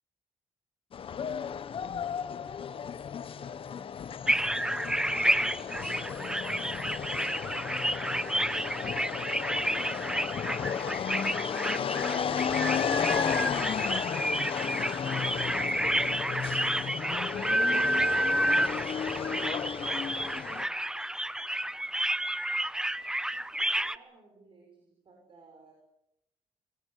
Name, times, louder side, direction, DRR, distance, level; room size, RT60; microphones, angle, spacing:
sound 1, 0.9-20.6, left 7 dB, 55° left, 1.2 m, -33 dB
voice 1, 1.5-10.6 11.7-20.8 23.3-25.7, right 3 dB, 50° right, 1 dB, 6.7 m, -55 dB
sound 2, 4.3-24.0, right 1 dB, 5° right, 0.8 m, -30 dB
23.5 x 19.0 x 9.3 m, 0.84 s
cardioid pair, 105°, 11 cm